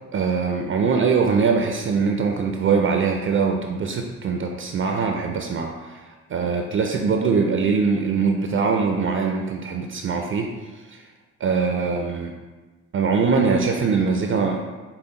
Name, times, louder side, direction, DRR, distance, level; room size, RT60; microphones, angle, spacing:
voice 1, 0.1-6.0 6.3-10.5 10.9-11.0 11.4-12.4 12.9-14.6, right 5 dB, 45° right, 3 dB, 0.4 m, -22 dB
5.6 x 2.1 x 3.8 m, 1.3 s
cardioid pair, 90°, 30 cm